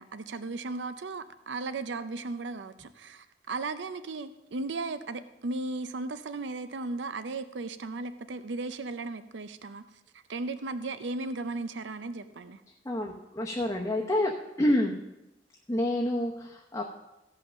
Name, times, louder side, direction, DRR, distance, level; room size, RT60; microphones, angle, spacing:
voice 1, 0.0-9.9 10.3-12.6, right 3 dB, 75° right, 12 dB, 0.6 m, -36 dB
voice 2, 12.8-14.3 14.6-14.9 15.7-16.8, left 1 dB, 15° left, -2 dB, 0.9 m, -28 dB
15.0 x 5.6 x 6.3 m, 0.95 s
head